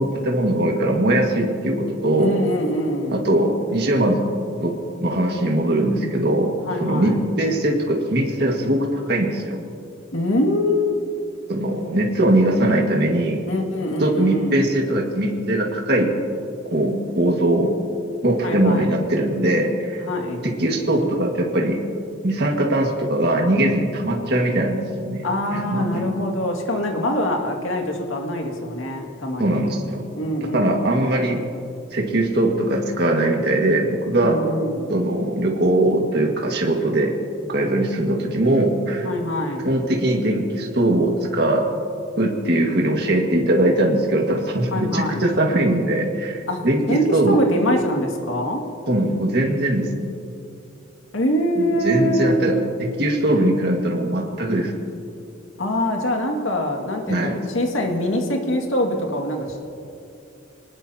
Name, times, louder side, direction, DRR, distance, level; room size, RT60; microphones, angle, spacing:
voice 1, 0.0-2.3 3.1-4.2 4.6-9.6 11.5-13.4 14.0-16.1 16.7-17.7 18.2-20.0 20.4-21.8 22.2-25.2 25.5-26.1 29.4-30.0 30.5-31.4 31.9-34.4 34.9-37.1 37.5-39.1 39.6-41.7 42.2-47.4 48.9-50.1 51.6-54.7 57.1-57.4, right 1 dB, 55° right, 1 dB, 1.9 m, -21 dB
voice 2, 2.2-3.2 6.6-7.2 10.1-11.0 13.5-14.7 18.4-18.9 20.0-20.5 25.2-29.7 30.1-30.6 34.2-35.0 39.0-39.7 44.7-45.3 46.5-48.6 51.1-52.4 55.6-59.6, left 1 dB, 90° left, 2 dB, 2.2 m, -24 dB
25.5 x 19.5 x 2.9 m, 2.6 s
head